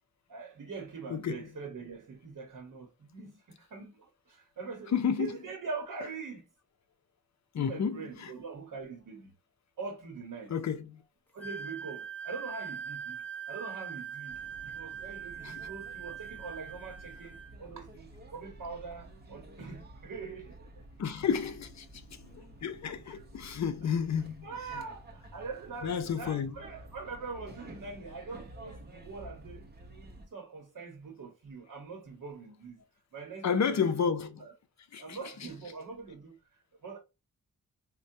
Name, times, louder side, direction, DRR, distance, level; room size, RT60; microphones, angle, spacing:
voice 1, 0.3-6.4 7.5-9.3 9.8-10.5 11.3-13.2 13.5-20.8 23.1-23.2 23.8-23.9 24.4-29.7 30.2-32.8 33.1-33.9 34.4-34.5 35.0-36.3 36.8-37.0, right 4 dB, 70° right, 0.9 m, -43 dB
voice 2, 1.1-1.5 4.9-5.3 7.5-8.3 10.5-11.0 15.4-15.6 21.0-24.8 25.8-26.6 33.4-34.5 34.9-35.2, left 7 dB, 55° left, 0.6 m, -31 dB
Wind instrument woodwind instrument, 11.4-17.5, right 7 dB, 5° left, 0.9 m, -42 dB
sound 1, 14.3-30.3, right 1 dB, 30° right, 0.7 m, -51 dB
4.4 x 2.2 x 2.6 m
wide cardioid pair, 165°, 33 cm